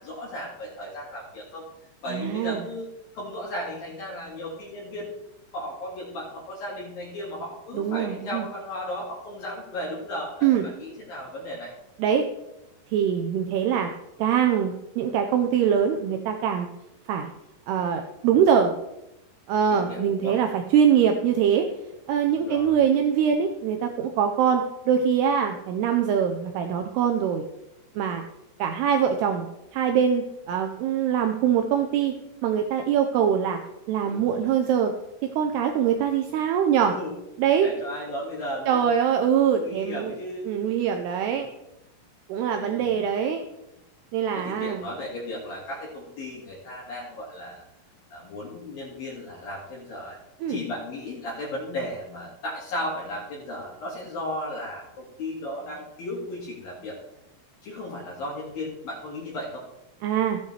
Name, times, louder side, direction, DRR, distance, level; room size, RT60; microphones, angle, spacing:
voice 1, 0.0-1.7 2.0-2.9 3.1-5.2 5.5-10.5 10.8-11.7 19.7-20.4 22.3-22.8 34.0-34.5 36.8-37.2 37.6-38.9 39.5-40.5 42.5-43.0 44.3-47.6 48.1-50.2 50.5-57.0 57.6-59.6, left 1 dB, 60° left, -5 dB, 3.1 m, -35 dB
voice 2, 2.1-2.6 7.7-8.5 10.4-10.6 12.0-12.2 12.9-13.9 14.2-16.7 17.1-17.3 17.7-18.7 19.5-21.7 22.1-27.5 28.0-28.2 28.6-29.5 29.7-32.1 32.4-33.6 33.9-34.9 35.4-37.0 37.4-37.7 38.7-40.1 40.5-41.5 42.3-43.4 44.1-44.8 50.4-50.6 60.0-60.4, right 8 dB, 85° right, 4 dB, 2.3 m, -23 dB
14.5 x 8.1 x 3.2 m, 0.89 s
omnidirectional pair, 5.5 m